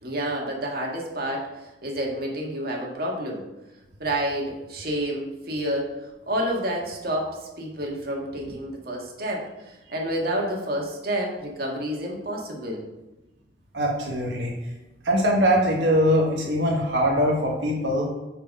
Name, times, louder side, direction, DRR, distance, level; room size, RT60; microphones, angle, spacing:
voice 1, 0.0-3.4 4.0-5.9 6.3-12.8, right 1 dB, 55° right, -1 dB, 1.8 m, -29 dB
voice 2, 13.7-14.5 15.0-18.1, equal, 85° right, -1 dB, 1.3 m, -22 dB
9.4 x 4.6 x 5.3 m, 1.0 s
head